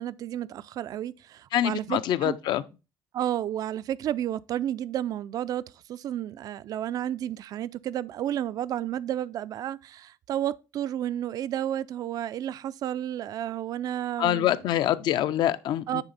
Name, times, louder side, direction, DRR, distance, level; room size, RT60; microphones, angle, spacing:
voice 1, 0.0-2.4 3.1-14.5 15.9-16.0, right 11 dB, 50° right, 0.3 m, -31 dB
voice 2, 1.5-2.6 14.2-16.0, left 12 dB, 60° left, 0.5 m, -25 dB
9.7 x 3.5 x 4.0 m
cardioid pair, 130°, 8 cm